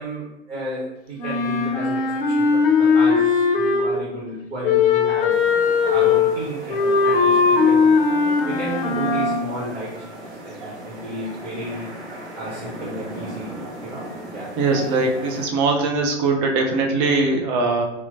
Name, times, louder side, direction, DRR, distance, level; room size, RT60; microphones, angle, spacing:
voice 1, 0.0-5.4 5.9-7.9 8.4-11.9 12.3-13.5 13.8-14.5, right 1 dB, 65° right, -5 dB, 1.0 m, -33 dB
Wind instrument woodwind instrument, 1.2-4.1 4.6-9.5, left 5 dB, 55° left, 0.6 m, -19 dB
sound 1, 5.3-15.5, right 1 dB, 40° right, 0.8 m, -37 dB
voice 2, 14.6-17.8, right 3 dB, 25° right, 2 dB, 0.4 m, -21 dB
4.2 x 2.1 x 2.5 m, 0.93 s
figure-of-eight pair, 100°, 33 cm